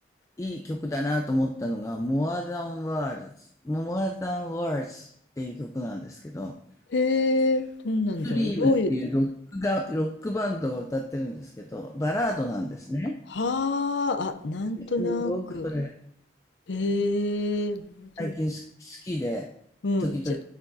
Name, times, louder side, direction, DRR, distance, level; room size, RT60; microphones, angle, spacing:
voice 1, 0.4-5.1 5.4-6.6 8.2-13.2 14.8-15.9 18.2-19.5 20.0-20.4, left 1 dB, 15° left, 3 dB, 0.3 m, -30 dB
voice 2, 6.9-8.9 13.3-15.7 16.7-18.3 19.8-20.2, left 2 dB, 70° left, 11 dB, 0.5 m, -27 dB
8.4 x 6.7 x 2.6 m, 0.67 s
head